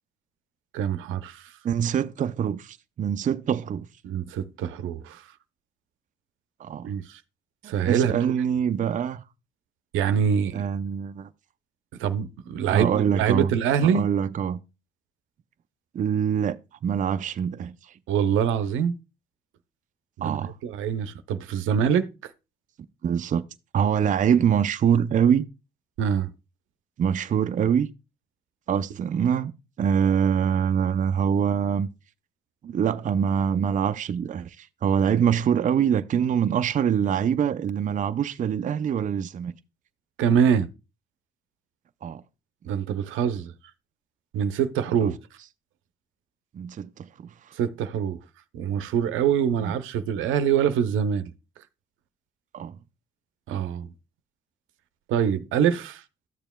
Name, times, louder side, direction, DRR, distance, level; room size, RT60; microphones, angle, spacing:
voice 1, 0.7-1.5 4.0-5.3 6.8-7.2 7.6-8.1 9.9-10.6 12.0-14.1 18.1-19.0 20.2-22.3 26.0-26.3 40.2-40.7 42.7-43.5 44.3-45.2 47.5-48.2 48.5-51.3 53.5-53.9 55.1-56.0, right 8 dB, 85° right, 0.6 m, -24 dB
voice 2, 1.6-3.9 6.6-6.9 7.6-9.2 10.5-11.3 12.7-13.5 13.8-14.6 15.9-17.7 20.2-20.5 23.0-23.5 23.7-25.5 27.0-27.9 28.7-29.5 29.8-31.9 32.6-39.5 42.0-42.2 45.0-45.1 46.5-47.3 49.6-49.7 52.5-52.8, right 8 dB, 40° right, 0.4 m, -24 dB
12.5 x 7.1 x 2.2 m
cardioid pair, 90°, 20 cm